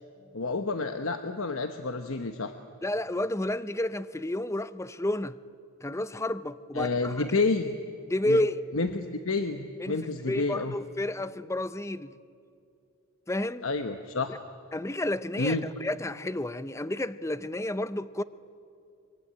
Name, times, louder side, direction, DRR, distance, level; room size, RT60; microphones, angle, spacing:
voice 1, 0.3-2.5 6.7-7.8 8.2-8.4 8.7-10.7 13.6-14.4 15.4-15.7, left 3 dB, 65° left, 1.0 m, -29 dB
voice 2, 2.8-5.4 5.8-7.4 8.1-8.6 9.8-10.0 10.3-12.1 13.3-13.7 14.7-18.2, left 1 dB, 15° left, 0.6 m, -31 dB
23.5 x 23.0 x 9.9 m
head